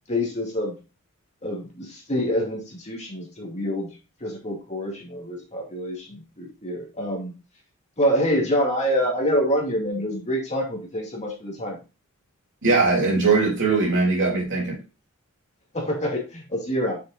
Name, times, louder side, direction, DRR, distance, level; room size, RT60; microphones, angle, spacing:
voice 1, 0.1-0.7 1.4-3.9 4.2-7.3 8.0-11.8 15.7-17.0, equal, 30° left, 2.3 m, -26 dB
voice 2, 12.6-14.8, right 3 dB, 55° right, 3.2 m, -20 dB
6.7 x 6.6 x 2.5 m
head